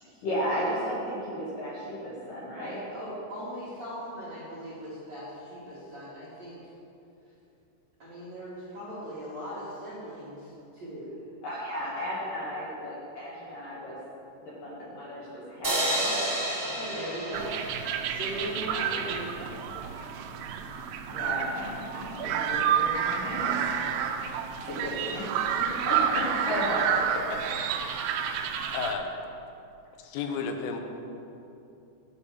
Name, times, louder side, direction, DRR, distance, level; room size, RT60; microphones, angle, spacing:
voice 1, 0.2-2.8 11.4-14.0 14.4-16.0 19.4-19.6 21.1-23.6 24.6-27.1, equal, 65° left, -7 dB, 2.3 m, -34 dB
voice 2, 2.5-6.6 8.0-11.1 15.8-16.3 16.6-17.6 18.0-19.4, equal, 60° right, -10 dB, 1.8 m, -39 dB
sound 1, 15.6-18.9, right 1 dB, 25° right, 1.8 m, -31 dB
sound 2, 17.3-28.9, right 8 dB, 85° right, 2.5 m, -30 dB
voice 3, 28.2-29.1 30.0-30.8, left 5 dB, 85° left, 5 dB, 3.3 m, -34 dB
10.5 x 5.5 x 7.2 m, 2.8 s
omnidirectional pair, 5.8 m